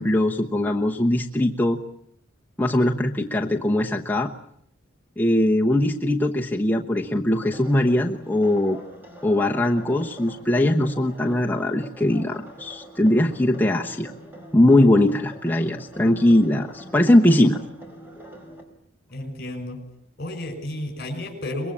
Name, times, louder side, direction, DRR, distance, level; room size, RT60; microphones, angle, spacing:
voice 1, 0.0-1.8 2.6-4.3 5.2-8.8 9.2-14.1 14.5-17.6, left 1 dB, 10° left, 0 dB, 1.1 m, -20 dB
sound 1, 7.3-18.6, equal, 10° right, 4.4 m, -44 dB
voice 2, 19.1-19.8 20.2-21.7, left 1 dB, 45° left, 3 dB, 5.7 m, -32 dB
23.5 x 21.5 x 8.6 m, 0.68 s
head